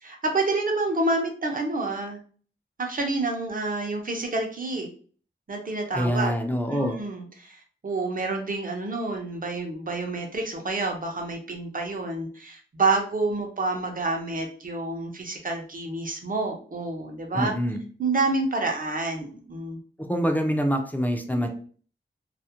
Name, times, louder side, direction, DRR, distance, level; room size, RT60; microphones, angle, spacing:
voice 1, 0.0-2.2 2.8-4.9 5.5-6.3 6.7-17.5 18.0-19.8, right 3 dB, 45° right, 2 dB, 0.6 m, -28 dB
voice 2, 5.9-7.0 17.4-17.8 20.0-21.5, equal, 10° left, 4 dB, 0.4 m, -25 dB
2.4 x 2.0 x 2.8 m, 0.43 s
wide cardioid pair, 80°, 20 cm